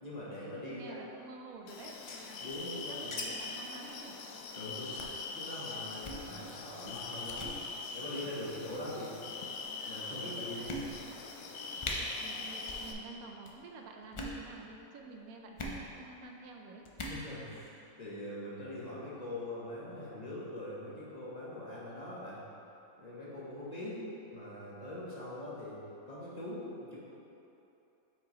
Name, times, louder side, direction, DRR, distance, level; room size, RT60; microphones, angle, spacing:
voice 1, 0.0-1.0 2.4-3.1 4.5-4.9 5.3-9.1 9.8-10.8 17.1-17.7 18.0-22.4 23.0-23.9 24.3-25.8 26.1-27.0, left 1 dB, 30° left, -8 dB, 1.0 m, -42 dB
voice 2, 0.7-1.9 2.2-2.4 2.9-4.2 12.3-16.8 23.8-24.1, right 3 dB, 90° right, 2 dB, 1.1 m, -49 dB
sound 1, 1.7-12.9, left 4 dB, 75° left, 1.0 m, -42 dB
sound 2, 1.8-3.2 3.5-3.6 3.8-4.0 4.4-4.6 5.0-5.2 5.9-6.2 6.8-7.0 7.3-7.6 8.5-8.9 9.6-9.7 10.1-10.2 10.7-11.2 11.5-11.6 11.8-12.0 12.6-12.9 13.1-13.5 14.0-14.4 15.6-15.8 16.8-17.2, left 1 dB, 55° left, 0.3 m, -41 dB
7.3 x 4.8 x 3.0 m, 3.0 s
omnidirectional pair, 1.5 m